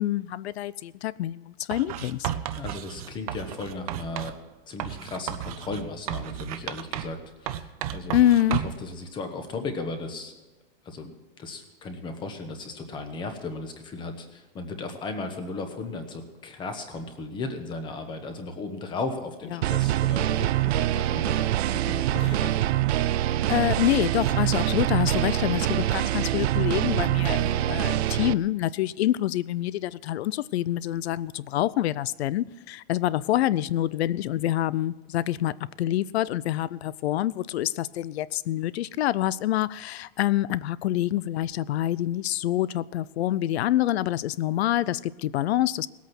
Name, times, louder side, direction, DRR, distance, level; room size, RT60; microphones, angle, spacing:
voice 1, 0.0-2.3 8.1-8.6 19.5-19.6 23.5-45.9, left 13 dB, 80° left, 0.6 m, -26 dB
Writing, 1.7-4.4 4.8-7.2 7.5-8.9, right 12 dB, 35° right, 0.6 m, -33 dB
voice 2, 2.5-4.4 4.7-8.2 8.5-10.3 10.8-11.1 11.4-22.6, left 3 dB, 15° left, 1.1 m, -36 dB
sound 1, 19.6-28.3, right 13 dB, 85° right, 0.6 m, -24 dB
18.5 x 8.4 x 6.0 m
supercardioid pair, 175°, 31 cm